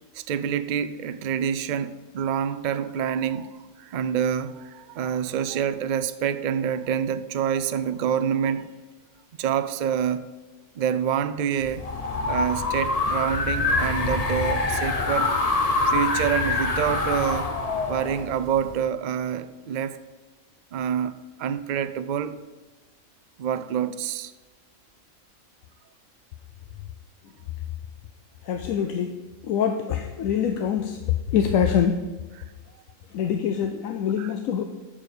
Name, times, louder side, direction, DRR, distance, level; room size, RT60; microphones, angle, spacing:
voice 1, 0.1-8.7 9.4-10.2 10.7-11.9 12.2-15.3 15.9-17.5 17.9-20.0 20.7-21.1 21.4-22.4 23.4-24.3 34.2-34.3, right 8 dB, 70° right, 0.4 m, -27 dB
sound 1, 11.6-18.8, left 3 dB, 35° left, 0.8 m, -25 dB
voice 2, 28.4-32.1 33.1-34.6, left 8 dB, 85° left, 1.1 m, -25 dB
10.5 x 4.9 x 6.8 m
omnidirectional pair, 1.4 m